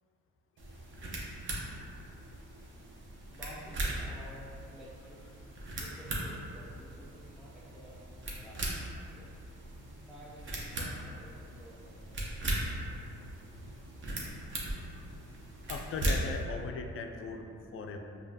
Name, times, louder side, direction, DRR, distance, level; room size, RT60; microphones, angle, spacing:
sound 1, 0.6-16.4, right 1 dB, 40° right, 0.8 m, -39 dB
voice 1, 3.3-5.2 5.8-9.3 10.0-13.0, equal, ahead, -8 dB, 0.5 m, -52 dB
voice 2, 15.7-17.5 17.7-18.0, left 4 dB, 45° left, 4 dB, 0.4 m, -38 dB
5.0 x 2.4 x 2.7 m, 2.6 s
cardioid pair, 90°, 30 cm